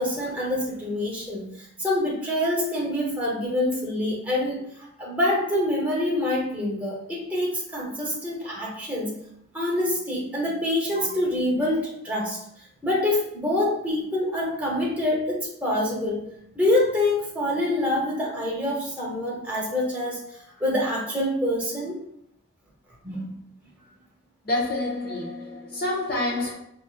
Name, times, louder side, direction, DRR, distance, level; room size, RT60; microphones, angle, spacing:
voice 1, 0.0-4.6 5.0-9.1 9.5-12.4 12.8-16.2 16.5-20.2 20.6-22.0 23.0-23.3, left 1 dB, 10° right, 1.1 m, -26 dB
voice 2, 24.4-26.5, left 2 dB, 50° left, 1.2 m, -27 dB
5.2 x 2.7 x 2.5 m
head